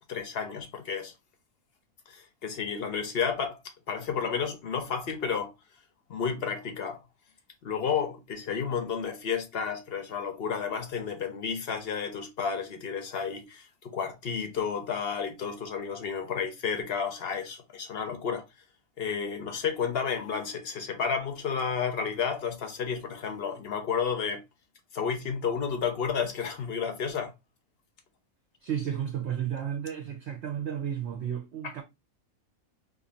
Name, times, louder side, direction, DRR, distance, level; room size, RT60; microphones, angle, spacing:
voice 1, 0.1-1.1 2.1-3.6 3.9-5.5 6.1-7.0 7.6-18.4 19.0-24.4 24.9-27.3, left 6 dB, 55° left, 0.8 m, -31 dB
voice 2, 28.6-31.8, right 9 dB, 60° right, 0.8 m, -33 dB
2.6 x 2.6 x 3.8 m
omnidirectional pair, 1.5 m